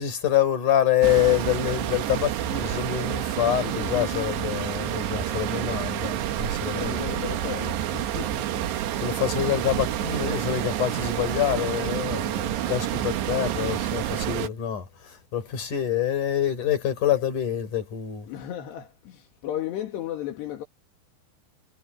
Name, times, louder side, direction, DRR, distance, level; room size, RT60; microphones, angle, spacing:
voice 1, 0.0-7.0 8.7-18.3, left 10 dB, 50° left, 5.9 m, -26 dB
sound 1, 1.0-14.5, right 11 dB, 85° right, 3.6 m, -29 dB
voice 2, 3.6-4.4 6.7-8.7 9.0-9.2 18.3-20.6, left 11 dB, 80° left, 4.2 m, -35 dB
omnidirectional pair, 4.8 m